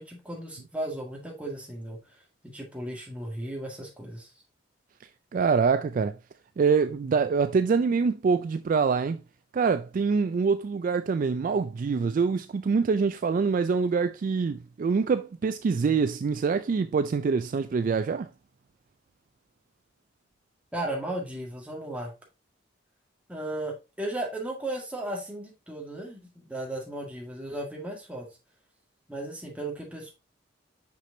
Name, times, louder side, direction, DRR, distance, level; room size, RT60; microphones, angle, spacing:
voice 1, 0.0-2.0 2.4-4.3 20.7-22.1 23.3-28.3 29.1-30.1, right 1 dB, 5° right, 1.7 m, -35 dB
voice 2, 5.3-6.2 6.6-9.2 9.5-18.3, right 5 dB, 45° right, 0.3 m, -25 dB
6.0 x 5.9 x 2.7 m
head